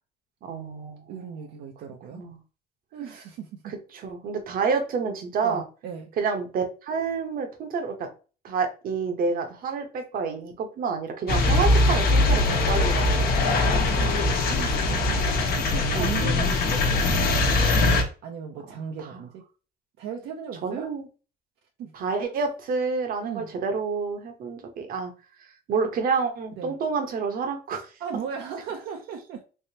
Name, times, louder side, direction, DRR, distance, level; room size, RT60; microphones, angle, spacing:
voice 1, 0.4-1.1 2.1-2.4 3.6-5.6 6.2-8.1 8.4-13.3 13.6-14.1 15.9-16.2 19.1-19.2 20.6-21.0 21.9-25.1 25.4-27.9, right 5 dB, 60° right, 0.9 m, -29 dB
voice 2, 1.1-2.3 2.9-3.8 5.4-6.1 11.5-11.6 14.5-15.3 15.6-17.5 18.2-19.4 20.0-20.9 21.8-21.9 23.2-23.5 26.6-26.7 28.0-29.4, right 7 dB, 80° right, 0.7 m, -37 dB
sound 1, 11.3-18.0, left 2 dB, 65° left, 1.0 m, -22 dB
3.5 x 3.1 x 2.8 m
cardioid pair, 110°, 17 cm